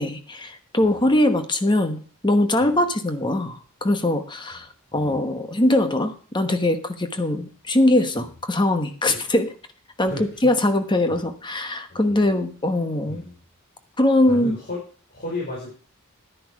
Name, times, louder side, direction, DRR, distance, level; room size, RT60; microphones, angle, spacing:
voice 1, 0.0-4.7 4.9-9.5 10.0-10.1 10.4-13.2 14.0-14.5, left 1 dB, 20° left, 8 dB, 1.1 m, -21 dB
voice 2, 0.8-1.1 2.6-2.8 4.9-5.2 8.2-8.3 10.0-10.5 11.1-11.2 11.9-12.3 13.1-13.4 14.3-14.8 15.1-15.7, left 2 dB, 45° left, -4 dB, 4.5 m, -35 dB
10.5 x 10.5 x 4.7 m, 0.39 s
head